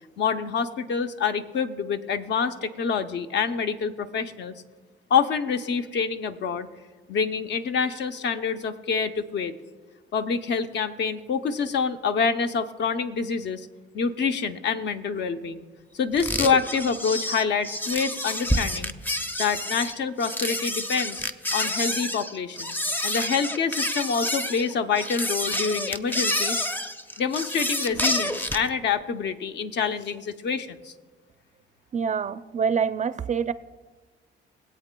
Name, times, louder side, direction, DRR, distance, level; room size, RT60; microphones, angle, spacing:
voice 1, 0.2-4.5 5.1-6.7 7.1-9.5 10.1-13.7 13.9-15.7 15.9-18.9 19.4-21.3 21.5-22.7 23.0-26.6 27.2-30.9, left 6 dB, 60° left, 8 dB, 0.7 m, -26 dB
sound 1, 16.2-28.7, left 1 dB, 10° left, 0.5 m, -28 dB
voice 2, 31.9-33.5, right 6 dB, 35° right, 12 dB, 0.4 m, -26 dB
21.0 x 8.2 x 2.3 m, 1.4 s
cardioid pair, 90°, 20 cm